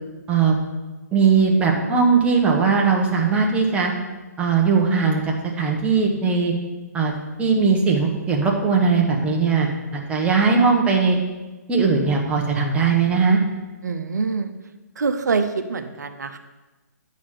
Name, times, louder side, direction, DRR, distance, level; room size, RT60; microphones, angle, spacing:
voice 1, 1.1-3.9 4.4-5.2 5.5-6.5 6.9-7.1 7.4-11.2 11.7-13.4, right 5 dB, 15° right, -1 dB, 1.2 m, -19 dB
voice 2, 13.8-14.5 15.0-16.4, right 4 dB, 85° right, 8 dB, 0.7 m, -25 dB
8.9 x 4.2 x 6.4 m, 1.2 s
hypercardioid pair, 140°, 9 cm